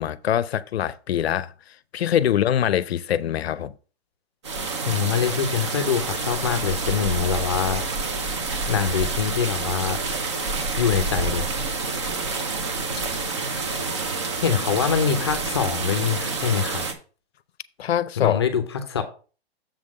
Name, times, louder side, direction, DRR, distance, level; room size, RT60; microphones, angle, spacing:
voice 1, 0.0-1.5 1.9-3.7 17.8-18.4, left 10 dB, 70° left, 0.6 m, -23 dB
sound 1, 4.4-16.9, right 3 dB, 25° right, 0.7 m, -28 dB
voice 2, 4.9-7.8 8.7-10.0 10.8-11.4 14.4-16.8 18.2-19.0, left 7 dB, 25° left, 0.6 m, -24 dB
7.3 x 3.7 x 6.1 m
hypercardioid pair, 180°, 32 cm